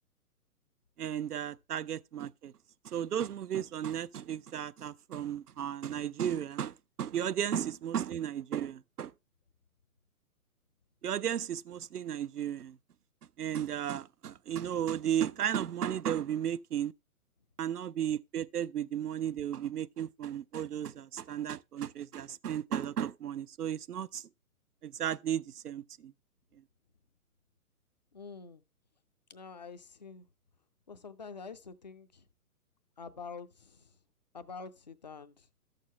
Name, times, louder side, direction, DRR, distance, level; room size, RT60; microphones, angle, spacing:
voice 1, 1.0-2.5 2.9-9.1 11.0-12.7 13.4-16.9 17.6-24.2 24.8-26.1, right 9 dB, 85° right, 0.5 m, -34 dB
voice 2, 28.1-28.6 29.3-30.3 30.9-32.3 33.0-34.0 34.3-35.5, left 5 dB, 30° left, 0.4 m, -47 dB
12.5 x 6.6 x 3.2 m
figure-of-eight pair, 125°, 45 cm